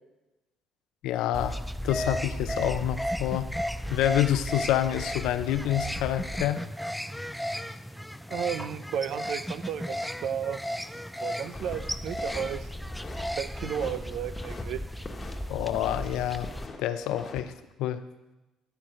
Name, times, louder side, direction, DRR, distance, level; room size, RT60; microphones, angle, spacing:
voice 1, 1.0-1.6 1.8-3.5 3.9-6.6 15.5-16.5 16.8-17.5 17.8-18.0, left 12 dB, 80° left, 11 dB, 0.6 m, -27 dB
sound 1, 1.3-16.7, equal, ahead, 0.4 m, -34 dB
voice 2, 8.3-10.6 11.2-12.7 13.4-14.8, right 8 dB, 70° right, 12 dB, 0.7 m, -33 dB
sound 2, 11.4-11.8 12.1-13.3 13.6-14.6 14.9-16.1 16.3-17.4, left 3 dB, 30° left, 1.3 m, -43 dB
13.5 x 4.6 x 6.5 m, 1.0 s
cardioid pair, 95°, 0 cm